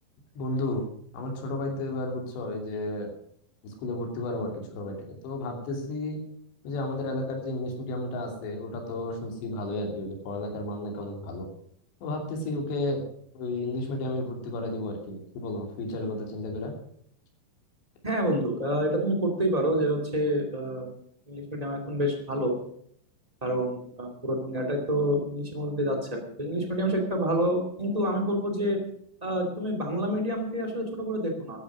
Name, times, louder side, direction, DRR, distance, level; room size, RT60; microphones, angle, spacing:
voice 1, 0.3-0.8 1.1-3.1 3.6-6.2 6.6-11.5 12.0-13.1 13.3-16.7, left 2 dB, 70° left, 2 dB, 5.0 m, -32 dB
voice 2, 18.0-20.9 21.3-22.5 23.4-28.8 29.2-31.6, equal, 25° right, 2 dB, 0.8 m, -28 dB
13.5 x 12.0 x 6.1 m, 0.65 s
omnidirectional pair, 5.3 m